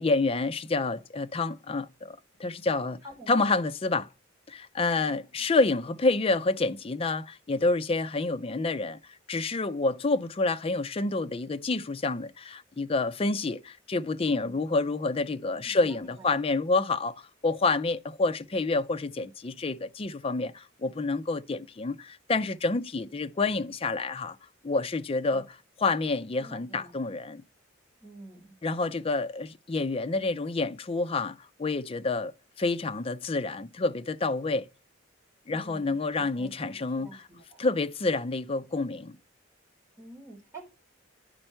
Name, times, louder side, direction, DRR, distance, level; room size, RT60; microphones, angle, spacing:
voice 1, 0.0-3.0 3.3-4.1 4.5-9.0 9.3-24.4 24.6-27.4 28.6-32.3 32.6-34.7 35.5-37.2 37.6-39.2, left 3 dB, 30° left, 0.4 m, -28 dB
voice 2, 3.0-3.5 5.0-5.5 14.3-14.6 15.6-16.3 25.3-25.4 26.4-26.9 28.0-28.6 35.5-37.6 40.0-40.7, right 2 dB, 15° right, 3.3 m, -48 dB
10.0 x 4.4 x 4.4 m
head